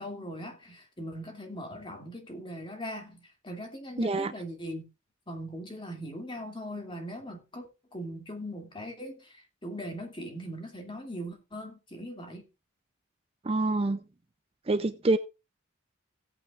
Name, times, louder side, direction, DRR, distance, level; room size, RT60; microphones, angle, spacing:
voice 1, 0.0-4.9 5.3-7.7 7.9-12.5, equal, 25° left, 2.5 m, -40 dB
voice 2, 4.0-4.3 13.4-14.0 14.7-15.2, right 2 dB, 30° right, 0.5 m, -26 dB
16.5 x 8.9 x 2.5 m
head